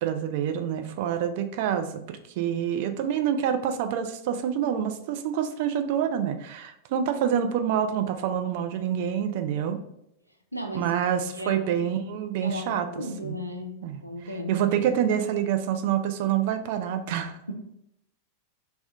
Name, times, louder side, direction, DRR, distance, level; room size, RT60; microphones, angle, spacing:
voice 1, 0.0-9.8 10.7-13.4 13.8-17.4, right 9 dB, 50° right, 7 dB, 0.3 m, -27 dB
voice 2, 10.5-10.9 11.3-11.8 12.4-14.9, left 1 dB, 90° left, 3 dB, 0.4 m, -36 dB
2.8 x 2.1 x 3.3 m, 0.76 s
figure-of-eight pair, 90°, 0 cm